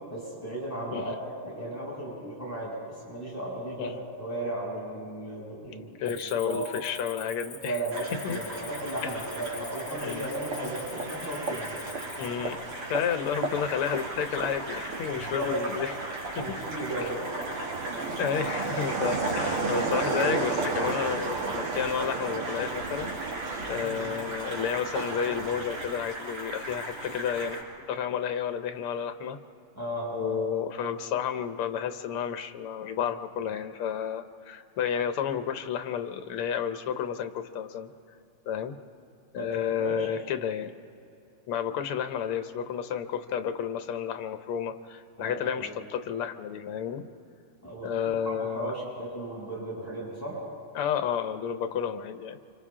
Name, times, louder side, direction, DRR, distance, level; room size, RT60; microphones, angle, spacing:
voice 1, 0.1-2.7 3.0-6.7 7.5-11.8 15.1-15.5 16.4-17.2 23.8-24.1 29.7-30.4 30.7-30.8 39.3-39.5 39.8-40.1 45.2-45.7 47.6-50.4, right 1 dB, 5° left, -7 dB, 7.2 m, -35 dB
voice 2, 5.6-7.8 8.2-8.4 10.0-10.3 12.2-12.6 12.9-15.9 16.4-16.6 17.0-17.1 18.2-23.1 23.7-27.6 27.9-29.4 30.1-37.9 38.5-38.7 39.3-40.7 41.5-47.1 47.8-48.7 50.7-52.4, left 8 dB, 85° left, 9 dB, 1.8 m, -31 dB
Cricket, 6.1-12.3, left 4 dB, 45° left, 1.7 m, -46 dB
sound 1, 7.9-27.6, right 1 dB, 60° right, 4.1 m, -39 dB
sound 2, 9.2-25.9, right 3 dB, 85° right, 2.6 m, -34 dB
29.5 x 26.0 x 3.7 m, 2.6 s
omnidirectional pair, 2.4 m